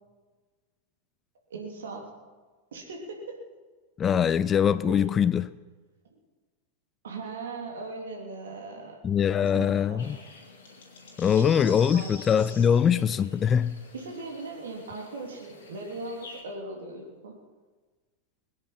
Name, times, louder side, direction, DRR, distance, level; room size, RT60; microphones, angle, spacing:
voice 1, 1.5-2.1 2.7-3.4 4.9-5.0 7.0-9.0 9.4-10.2 11.4-12.3 12.9-13.0 13.9-17.3, right 3 dB, 65° right, 3.1 m, -39 dB
voice 2, 4.0-5.5 9.0-10.2 11.2-13.8, left 8 dB, 25° left, 0.4 m, -23 dB
sound 1, 10.0-16.4, left 3 dB, 60° left, 3.0 m, -47 dB
21.5 x 9.7 x 5.8 m
figure-of-eight pair, 90°, 0 cm